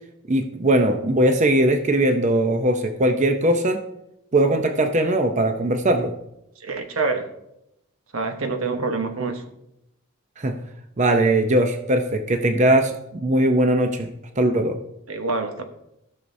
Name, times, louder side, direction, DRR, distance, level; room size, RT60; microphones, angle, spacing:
voice 1, 0.3-3.8 4.3-6.1 10.4-10.5 11.0-14.1 14.4-14.8, right 1 dB, 35° right, 5 dB, 0.6 m, -20 dB
voice 2, 6.6-7.3 8.1-9.4 15.1-15.6, right 3 dB, 85° right, 5 dB, 1.1 m, -26 dB
17.0 x 6.2 x 2.7 m, 0.83 s
head